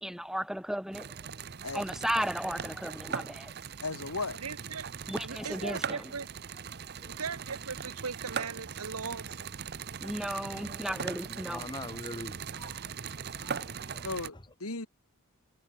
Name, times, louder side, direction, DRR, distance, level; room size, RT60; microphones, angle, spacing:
voice 1, 0.0-1.2 1.7-3.5 5.1-6.0 10.0-11.7, equal, ahead, 1.7 m, -34 dB
sound 1, 0.9-14.3, right 7 dB, 45° right, 0.8 m, -40 dB
voice 2, 3.8-4.4 14.0-14.9, left 3 dB, 70° left, 2.7 m, -36 dB
voice 3, 4.4-4.9 5.2-6.3 7.2-9.4 10.5-10.7, right 5 dB, 75° right, 1.3 m, -39 dB
voice 4, 11.3-12.8 13.3-14.1, left 2 dB, 20° left, 2.5 m, -44 dB
head